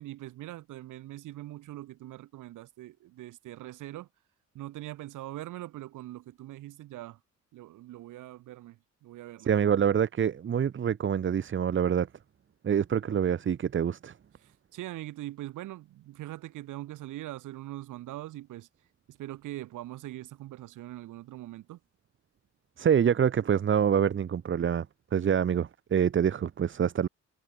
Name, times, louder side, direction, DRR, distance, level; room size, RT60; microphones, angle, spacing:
voice 1, 0.0-4.1 4.5-7.2 7.5-9.7 14.4-18.7 19.1-21.8, right 15 dB, 85° right, 2.0 m, -42 dB
voice 2, 9.5-12.1 12.6-14.1 22.8-24.9 25.1-27.1, right 8 dB, 40° right, 1.0 m, -26 dB
cardioid pair, 90°, 30 cm